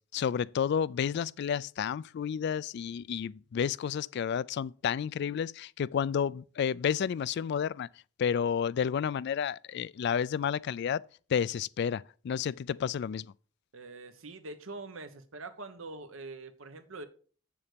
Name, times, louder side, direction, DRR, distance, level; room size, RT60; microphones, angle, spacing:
voice 1, 0.1-7.9 8.2-11.0 11.3-13.3, left 7 dB, 55° left, 0.3 m, -31 dB
voice 2, 13.7-17.1, right 3 dB, 90° right, 1.2 m, -44 dB
7.9 x 7.0 x 5.1 m
head